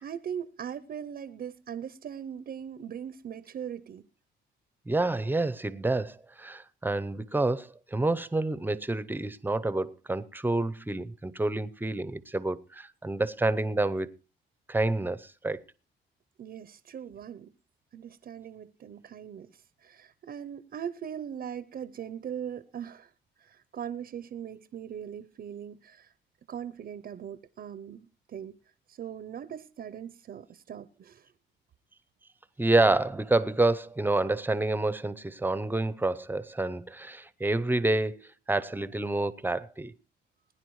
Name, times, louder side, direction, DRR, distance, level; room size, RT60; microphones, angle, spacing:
voice 1, 0.0-4.0 16.4-17.5 17.9-23.1 23.4-26.1 26.5-28.6 28.9-31.3, right 8 dB, 50° right, 0.6 m, -40 dB
voice 2, 4.9-14.1 14.7-15.6 32.6-39.9, right 2 dB, 10° right, 0.6 m, -28 dB
20.5 x 9.9 x 3.1 m
cardioid pair, 90°, 20 cm